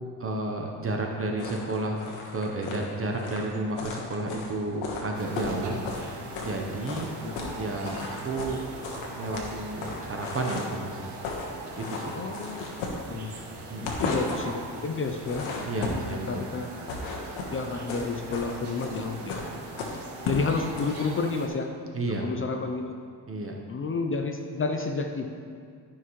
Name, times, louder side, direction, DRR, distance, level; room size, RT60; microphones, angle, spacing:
voice 1, 0.2-5.8 6.4-7.1 7.5-8.7 9.1-11.0 11.8-12.2 13.7-14.0 15.6-16.4 21.9-22.3 23.3-23.6, right 2 dB, 30° right, 1 dB, 0.8 m, -31 dB
sound 1, 1.4-6.6 6.8-7.6 7.8-10.8 11.1-11.5 11.7-13.4 13.7-14.5 15.0-16.2 16.6-21.0, left 3 dB, 85° left, 1.3 m, -35 dB
sound 2, 5.1-21.5, right 2 dB, 65° right, 1.5 m, -41 dB
voice 2, 12.1-12.6 13.1-13.4 13.8-15.5 15.9-16.7 17.5-19.4 19.7-21.8 22.0-22.9 23.7-25.3, left 4 dB, 30° left, 5 dB, 0.5 m, -31 dB
12.5 x 5.8 x 3.1 m, 2.1 s
cardioid pair, 105°, 45 cm